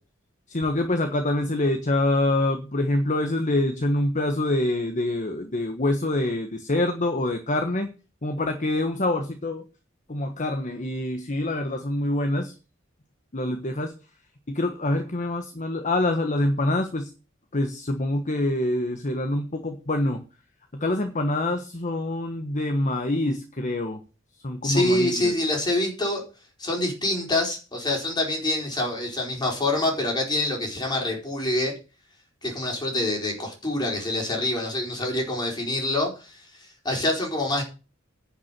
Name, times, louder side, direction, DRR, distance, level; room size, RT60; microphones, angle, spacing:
voice 1, 0.5-7.9 8.2-9.6 10.1-12.5 13.3-13.9 14.5-17.1 17.5-20.2 20.7-24.0 24.4-25.3, left 1 dB, 40° left, 6 dB, 1.3 m, -25 dB
voice 2, 24.6-26.2 26.6-31.7 32.4-36.4 36.8-37.6, left 1 dB, 20° left, 0 dB, 4.7 m, -26 dB
10.5 x 6.0 x 8.9 m, 0.33 s
head